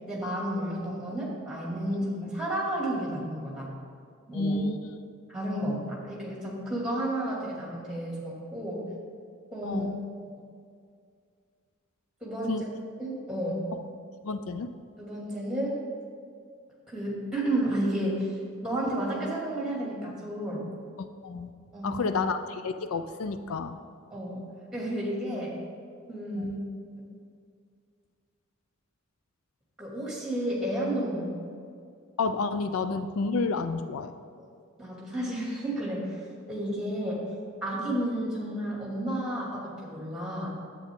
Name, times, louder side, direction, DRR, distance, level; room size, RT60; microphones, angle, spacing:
voice 1, 0.1-3.7 4.3-4.6 5.3-8.8 9.5-9.9 12.2-12.7 13.0-13.6 15.0-15.8 16.9-18.3 18.6-20.6 21.7-22.1 24.1-24.4 24.7-25.5 26.1-26.6 29.8-31.3 34.8-36.1 36.5-37.2 37.6-40.5, right 1 dB, 5° right, -5 dB, 2.4 m, -31 dB
voice 2, 4.3-4.9 8.9-9.0 9.6-10.0 12.5-12.7 14.2-14.7 21.0-21.5 21.8-23.8 26.4-26.5 32.2-34.2, left 3 dB, 75° left, 10 dB, 0.4 m, -30 dB
10.0 x 8.3 x 3.7 m, 2.3 s
head